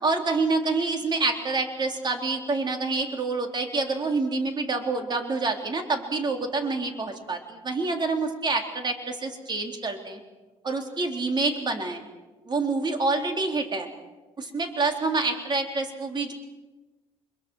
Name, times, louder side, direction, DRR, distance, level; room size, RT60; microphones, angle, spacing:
voice 1, 0.0-10.2 10.6-12.0 12.5-13.9 14.4-16.3, right 3 dB, 35° right, 4 dB, 3.8 m, -27 dB
24.5 x 22.5 x 6.4 m, 1.2 s
cardioid pair, 90°, 12 cm